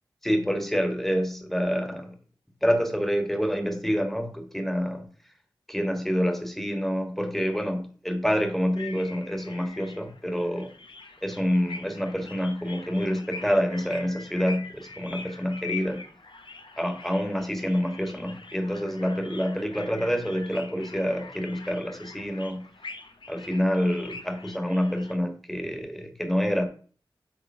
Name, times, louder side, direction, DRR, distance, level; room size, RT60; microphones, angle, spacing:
voice 1, 0.2-2.1 2.6-5.1 5.7-10.7 11.2-16.0 16.8-22.6 23.3-26.7, equal, 5° left, 1.6 m, -27 dB
sound 1, 8.8-25.2, left 4 dB, 75° left, 1.0 m, -44 dB
7.8 x 3.6 x 5.5 m
wide cardioid pair, 60°, 8 cm